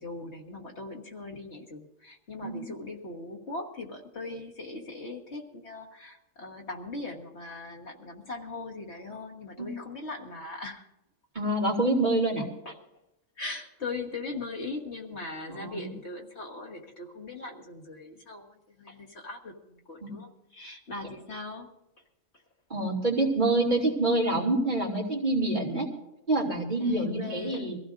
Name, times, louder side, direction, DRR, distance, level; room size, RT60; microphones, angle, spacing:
voice 1, 0.0-10.8 12.7-12.8 13.4-21.7 26.8-27.7, left 3 dB, 60° left, 0 dB, 1.7 m, -40 dB
voice 2, 11.3-12.5 15.5-15.9 20.0-20.1 22.7-25.9 26.3-27.8, right 2 dB, 35° right, -3 dB, 2.9 m, -26 dB
24.0 x 15.5 x 2.6 m, 0.91 s
omnidirectional pair, 1.3 m